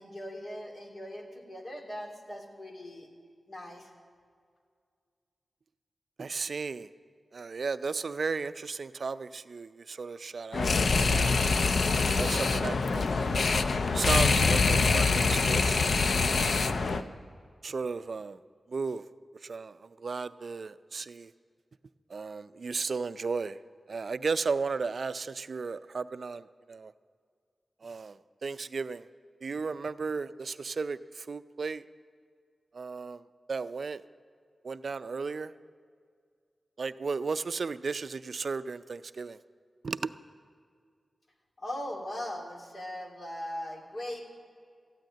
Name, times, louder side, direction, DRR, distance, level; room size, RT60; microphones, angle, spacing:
voice 1, 0.0-3.1 3.5-3.9 41.6-44.2, left 1 dB, 50° left, 0 dB, 2.6 m, -39 dB
voice 2, 6.2-6.9 7.3-10.8 11.1-11.4 11.9-13.6 13.9-16.0 16.7-17.1 17.6-18.4 18.7-19.0 19.4-21.3 22.1-23.6 23.9-26.9 27.8-28.2 28.4-29.0 29.4-31.8 32.7-33.2 33.5-34.0 34.6-35.5 36.8-39.4 39.8-40.1, right 4 dB, 65° right, 13 dB, 0.4 m, -34 dB
sound 1, 10.5-17.0, left 4 dB, 70° left, 0.6 m, -25 dB
14.0 x 9.2 x 8.6 m, 2.1 s
cardioid pair, 65°, 0 cm